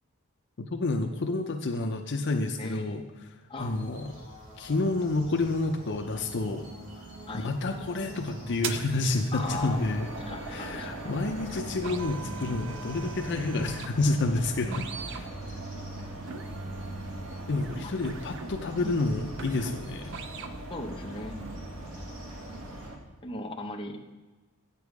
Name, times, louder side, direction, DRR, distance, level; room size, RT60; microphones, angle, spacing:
voice 1, 0.6-3.0 3.6-4.1 4.6-6.7 7.3-10.1 10.5-14.7 15.1-15.3 17.5-20.1, left 2 dB, 55° left, 4 dB, 0.6 m, -29 dB
voice 2, 2.6-3.0 3.5-3.9 7.3-7.5 9.3-9.9 10.2-11.0 14.7-15.0 18.8-18.9 20.7-21.3 23.2-24.0, left 2 dB, 25° left, 1 dB, 0.9 m, -38 dB
sound 1, 3.6-22.9, right 1 dB, 40° right, 2.7 m, -45 dB
sound 2, 6.1-20.7 21.1-21.6, right 5 dB, 60° right, 0.6 m, -43 dB
sound 3, 9.4-23.0, right 1 dB, 75° right, 1.5 m, -41 dB
9.1 x 6.9 x 4.7 m, 1.2 s
head